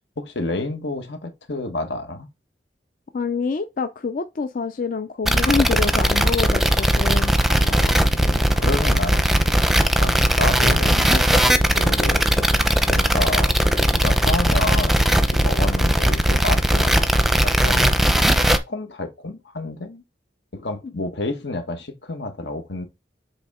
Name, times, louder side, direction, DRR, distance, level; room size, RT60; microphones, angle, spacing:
voice 1, 0.2-2.3 7.5-9.6 9.9-12.2 12.8-17.0 17.4-20.0 20.5-22.9, left 2 dB, 80° left, 1.3 m, -30 dB
voice 2, 3.1-7.3, left 5 dB, 50° left, 0.4 m, -26 dB
sound 1, 5.2-18.6, equal, ahead, 0.6 m, -18 dB
7.9 x 3.5 x 3.6 m
head